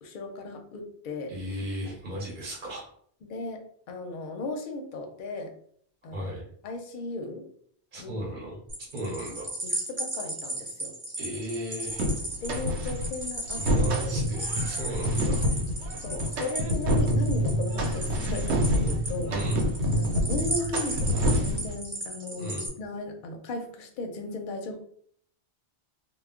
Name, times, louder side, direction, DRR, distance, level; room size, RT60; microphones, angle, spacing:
voice 1, 0.0-1.3 3.2-5.5 6.0-6.3 6.6-7.5 8.0-8.3 9.0-9.1 9.6-10.9 12.4-13.6 13.9-14.2 16.0-19.3 19.9-22.5 22.8-24.8, left 2 dB, 60° left, 4 dB, 0.6 m, -36 dB
voice 2, 1.3-2.9 6.1-6.4 7.9-8.6 8.9-9.5 11.2-12.1 13.5-15.5 19.3-19.6 22.4-22.7, equal, 50° right, -3 dB, 0.8 m, -35 dB
sound 1, 8.7-22.7, right 1 dB, 20° right, 0.5 m, -36 dB
sound 2, 12.0-13.1 13.5-21.7, equal, 75° right, 0.9 m, -27 dB
2.2 x 2.0 x 3.6 m, 0.62 s
omnidirectional pair, 1.2 m